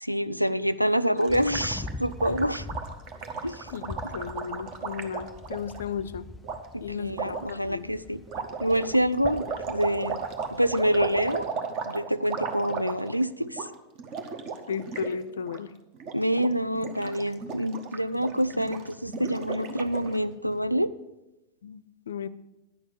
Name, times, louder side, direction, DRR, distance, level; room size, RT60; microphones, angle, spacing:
voice 1, 0.0-2.6 3.4-3.7 6.7-8.2 8.6-10.2 10.5-11.5 11.9-13.7 16.1-20.9, equal, 90° right, 13 dB, 0.3 m, -26 dB
Gurgling, 1.2-5.8 6.4-6.6 7.1-7.5 8.3-13.2 13.5-13.7 14.0-15.1 15.4-15.6 15.9-16.5 16.8-20.2, right 5 dB, 40° right, 1.0 m, -35 dB
sound 1, 1.3-11.5, left 2 dB, 5° left, 0.5 m, -43 dB
voice 2, 3.7-6.3 6.8-7.9 14.7-15.7 21.6-22.3, left 7 dB, 65° left, 17 dB, 0.4 m, -35 dB
9.5 x 6.3 x 6.9 m, 0.96 s
figure-of-eight pair, 90°, 0 cm